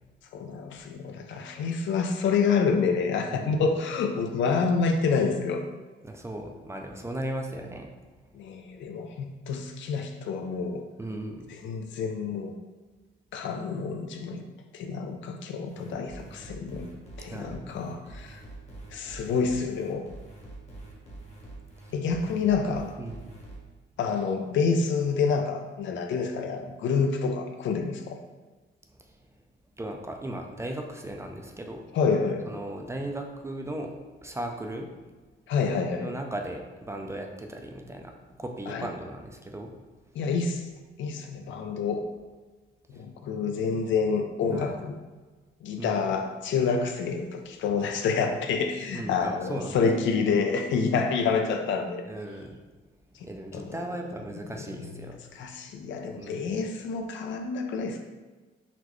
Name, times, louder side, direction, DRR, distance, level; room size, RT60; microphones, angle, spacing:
voice 1, 0.3-5.6 8.3-10.8 11.6-12.5 13.3-14.4 14.7-16.9 17.2-18.4 18.9-20.0 21.9-22.9 24.0-28.2 31.9-32.5 35.5-36.1 38.7-38.9 40.1-40.7 41.0-42.0 42.9-45.0 45.6-52.0 53.5-53.8 54.8-58.0, left 5 dB, 70° left, 4 dB, 0.4 m, -28 dB
voice 2, 3.3-3.6 6.0-7.9 11.0-11.5 17.3-17.7 23.0-23.3 29.8-31.8 32.5-33.9 34.2-34.9 36.0-38.1 38.4-39.7 44.5-44.8 45.8-46.1 48.9-49.8 52.1-52.6 53.2-55.2 56.2-56.6, right 1 dB, 15° right, 2 dB, 0.4 m, -37 dB
sound 1, 15.7-23.6, right 2 dB, 35° left, 1.0 m, -45 dB
4.0 x 2.2 x 3.0 m, 1.3 s
cardioid pair, 90°, 20 cm